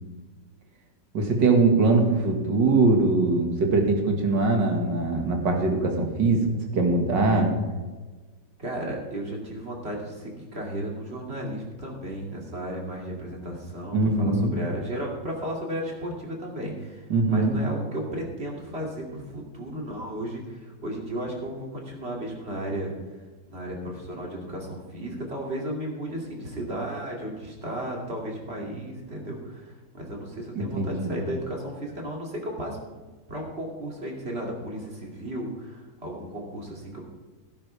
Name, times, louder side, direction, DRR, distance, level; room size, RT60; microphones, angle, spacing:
voice 1, 1.1-6.5 6.7-7.5 13.9-14.5 17.1-17.5 30.6-31.2, right 3 dB, 65° right, 2 dB, 2.6 m, -22 dB
voice 2, 8.6-22.9 23.5-37.0, right 1 dB, 30° right, -1 dB, 2.8 m, -34 dB
17.0 x 10.5 x 3.5 m, 1.3 s
omnidirectional pair, 2.1 m